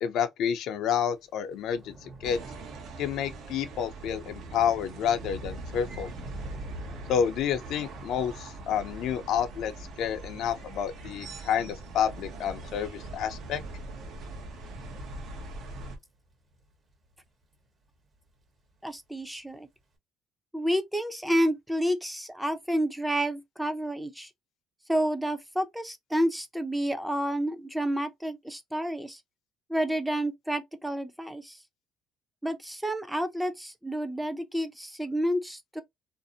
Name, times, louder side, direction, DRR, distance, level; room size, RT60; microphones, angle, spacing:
voice 1, 0.0-2.4 3.0-6.1 7.1-9.7 10.0-13.6, left 8 dB, 70° left, 0.4 m, -29 dB
Thunder / Rain, 1.1-17.7 18.0-18.5 18.7-18.9, right 1 dB, 40° right, 1.0 m, -48 dB
sound 1, 2.2-16.0, right 2 dB, 65° right, 0.7 m, -42 dB
voice 2, 18.8-19.7 20.5-24.3 24.9-29.2 29.7-31.6 32.4-35.8, equal, 5° right, 0.4 m, -30 dB
2.5 x 2.0 x 2.6 m
cardioid pair, 95°, 0 cm